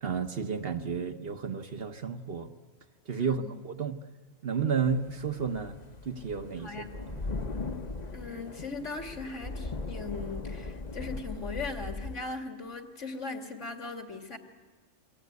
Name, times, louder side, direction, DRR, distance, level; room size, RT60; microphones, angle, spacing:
voice 1, 0.0-2.5 3.1-4.0 4.4-5.8 6.0-7.2, right 6 dB, 50° right, 1.3 m, -32 dB
voice 2, 3.2-3.6 6.6-7.1 8.1-14.4, left 4 dB, 70° left, 2.7 m, -39 dB
sound 1, 4.8-12.2, left 3 dB, 35° left, 1.1 m, -39 dB
27.5 x 23.0 x 9.5 m
omnidirectional pair, 1.3 m